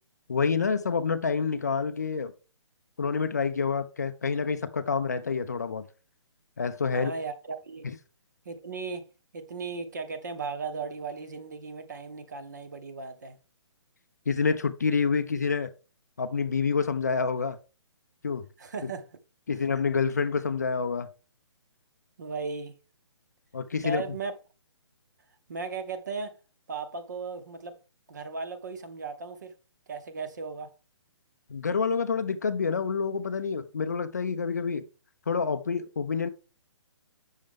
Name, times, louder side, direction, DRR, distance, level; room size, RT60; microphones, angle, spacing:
voice 1, 0.3-2.3 3.0-5.9 6.6-7.1 7.8-7.9 14.3-15.7 16.2-17.6 18.2-18.4 18.8-18.9 19.5-21.1 23.5-24.0 31.5-34.8 35.3-36.3, left 5 dB, 35° left, 0.4 m, -27 dB
voice 2, 6.9-7.9 8.4-9.1 9.3-13.4 18.6-19.1 22.2-22.7 23.8-24.3 25.5-26.4 26.7-27.8 28.1-29.5 29.9-30.7, right 4 dB, 40° right, 0.8 m, -36 dB
7.7 x 6.4 x 3.4 m
hypercardioid pair, 180°, 15 cm